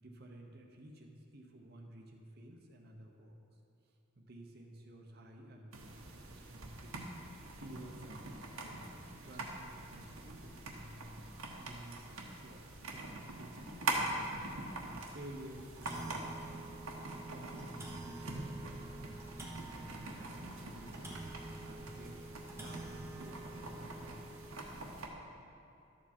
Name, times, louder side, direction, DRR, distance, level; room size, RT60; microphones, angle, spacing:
voice 1, 0.0-3.4 4.2-11.1 11.6-16.4 17.0-21.1 21.4-24.3, right 1 dB, 50° right, 1 dB, 0.9 m, -53 dB
sound 1, 5.7-25.1, right 2 dB, 80° right, 1.2 m, -44 dB
sound 2, 10.1-10.2 10.6-10.7 11.8-11.9 12.4-12.5 12.9-13.0 13.6-13.7 14.7-14.9 15.3-15.4 15.6-24.7, right 2 dB, 10° right, 0.9 m, -49 dB
12.5 x 7.2 x 4.4 m, 2.8 s
head